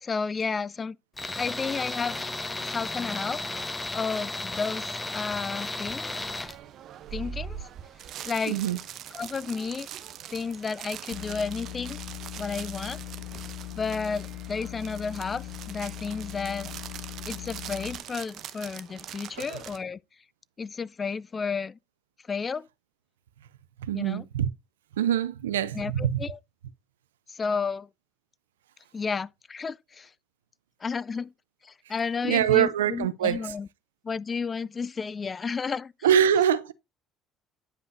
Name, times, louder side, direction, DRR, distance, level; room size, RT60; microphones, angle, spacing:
voice 1, 0.0-1.0 1.4-3.4 3.9-6.1 7.1-7.7 8.2-8.6 9.1-9.9 10.3-12.0 12.4-13.0 13.7-16.7 17.3-20.0 20.6-21.8 22.3-22.7 23.9-24.2 25.7-26.4 27.3-27.9 28.9-30.1 30.8-31.3 31.6-33.7 34.0-35.9, left 5 dB, 30° left, 0.3 m, -32 dB
Tools, 1.2-6.6, left 2 dB, 15° left, 0.8 m, -34 dB
sound 1, 6.1-19.8, right 9 dB, 55° right, 0.7 m, -42 dB
voice 2, 8.5-8.8 19.5-19.6 23.8-24.5 25.0-26.2 32.2-33.4 36.0-36.7, right 9 dB, 85° right, 0.4 m, -24 dB
sound 2, 11.1-18.0, left 20 dB, 75° left, 0.6 m, -40 dB
9.5 x 5.3 x 2.6 m
hypercardioid pair, 65°, 0 cm